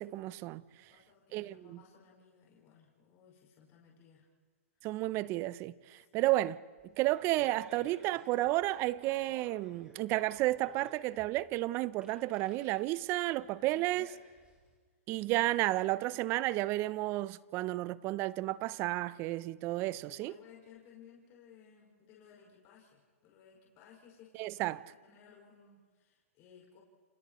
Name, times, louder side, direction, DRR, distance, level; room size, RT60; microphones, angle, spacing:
voice 1, 0.0-0.6 1.3-1.8 4.8-6.6 7.0-14.1 15.1-20.3 24.4-24.8, right 17 dB, 30° right, 0.5 m, -32 dB
voice 2, 0.7-4.3 6.0-6.4 13.3-14.1 18.9-19.0 20.1-26.8, left 7 dB, 35° left, 5.5 m, -59 dB
Fart, 6.8-14.7, right 2 dB, 15° right, 4.9 m, -56 dB
29.5 x 29.0 x 3.1 m
hypercardioid pair, 135°, 8 cm